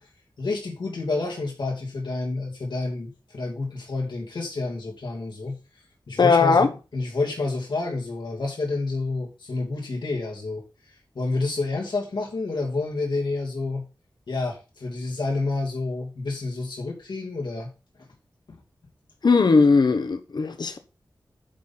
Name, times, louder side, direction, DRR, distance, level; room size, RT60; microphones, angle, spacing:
voice 1, 0.4-5.6 6.1-10.6 11.1-13.8 14.3-17.7 18.5-18.6, left 3 dB, 85° left, 2.6 m, -29 dB
voice 2, 6.2-6.7 19.2-20.8, left 4 dB, 70° left, 1.1 m, -18 dB
10.0 x 4.4 x 5.6 m
wide cardioid pair, 60°, 8 cm